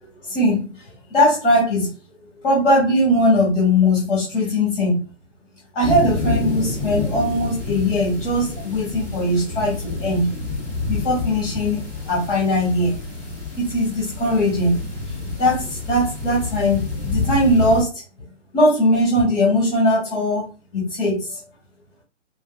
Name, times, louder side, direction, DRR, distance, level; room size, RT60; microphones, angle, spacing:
voice 1, 0.2-0.8 1.1-1.9 2.4-5.0 5.7-10.3 10.9-11.8 12.0-13.0 13.6-14.8 15.4-18.0 18.5-20.5 20.7-21.4, left 1 dB, 50° left, -5 dB, 1.7 m, -20 dB
sound 1, 5.8-17.8, left 3 dB, 20° left, 1.5 m, -28 dB
5.1 x 2.1 x 2.3 m, 0.33 s
hypercardioid pair, 140°, 36 cm